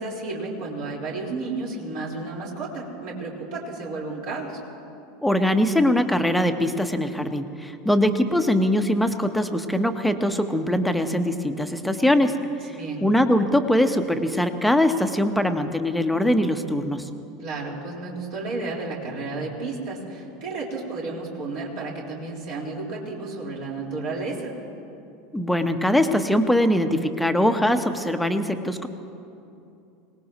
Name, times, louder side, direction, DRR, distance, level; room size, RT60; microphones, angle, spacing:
voice 1, 0.0-4.6 12.7-13.1 17.4-24.5, right 3 dB, 55° right, -4 dB, 4.2 m, -32 dB
voice 2, 5.2-17.1 25.3-28.9, left 1 dB, 5° left, 7 dB, 1.1 m, -22 dB
25.0 x 19.0 x 3.1 m, 2.7 s
figure-of-eight pair, 75°, 0 cm